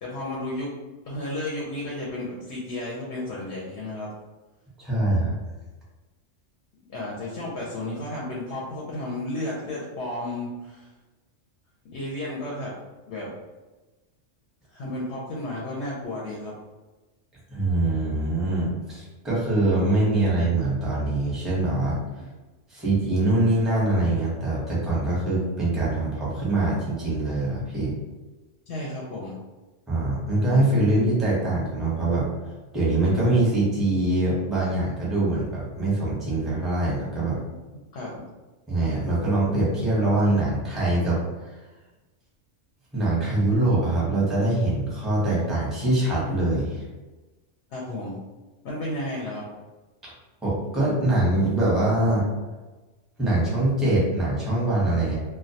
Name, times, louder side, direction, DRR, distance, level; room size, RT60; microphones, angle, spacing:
voice 1, 0.0-0.7 1.0-4.1 6.9-10.9 11.9-12.8 13.1-13.3 14.7-16.5 22.1-22.3 28.7-29.4 37.9-38.1 47.7-48.2 48.6-49.4, left 1 dB, 65° left, -4 dB, 0.8 m, -33 dB
voice 2, 4.8-5.4 17.5-22.0 22.7-27.9 29.9-32.3 32.7-37.4 38.7-41.5 42.9-46.8 50.4-52.2 53.2-55.2, right 2 dB, ahead, -7 dB, 0.6 m, -23 dB
2.2 x 2.2 x 2.7 m, 1.2 s
omnidirectional pair, 1.3 m